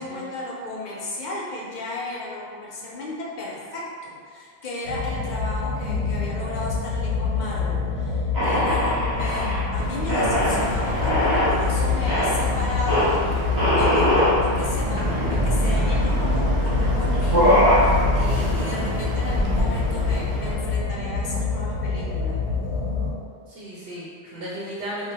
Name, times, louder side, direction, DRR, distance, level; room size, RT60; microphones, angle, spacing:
voice 1, 0.0-22.4, left 2 dB, 55° left, -5 dB, 0.6 m, -34 dB
sound 1, 4.8-23.1, left 4 dB, 80° left, 0.9 m, -27 dB
sound 2, 8.3-9.6 10.1-11.6 12.0-12.3 12.9-13.1 13.6-14.3 15.0-15.1 15.3-16.0 16.7-16.8 17.1-17.9, left 1 dB, 20° right, 0.7 m, -21 dB
Boat Water vehicle, 9.8-20.6, equal, 50° right, 0.3 m, -26 dB
voice 2, 18.2-18.9 23.5-25.1, equal, 90° right, -7 dB, 0.9 m, -36 dB
2.3 x 2.1 x 3.9 m, 2.1 s
omnidirectional pair, 1.1 m